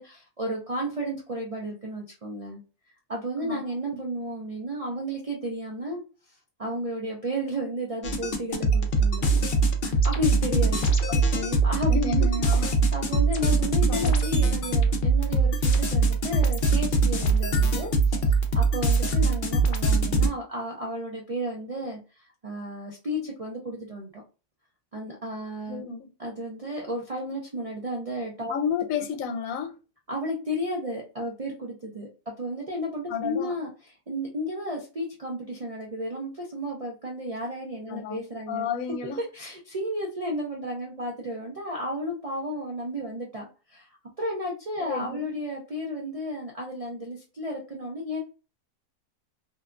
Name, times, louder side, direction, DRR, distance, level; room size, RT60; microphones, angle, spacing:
voice 1, 0.0-2.6 3.1-6.0 6.6-9.4 9.8-10.8 11.6-11.9 12.9-18.2 18.5-24.2 24.9-25.9 26.2-28.5 30.1-32.1 32.4-33.7 34.1-38.6 39.2-48.2, equal, 70° right, 0.3 m, -33 dB
sound 1, 8.0-20.3, right 3 dB, 60° left, 0.5 m, -22 dB
voice 2, 11.1-11.6 11.9-12.7 13.9-14.2 25.7-26.1 28.5-29.8 33.1-33.6 37.9-38.2 38.5-39.2 44.8-45.3, left 5 dB, 75° left, 1.0 m, -31 dB
2.7 x 2.2 x 2.4 m
omnidirectional pair, 1.5 m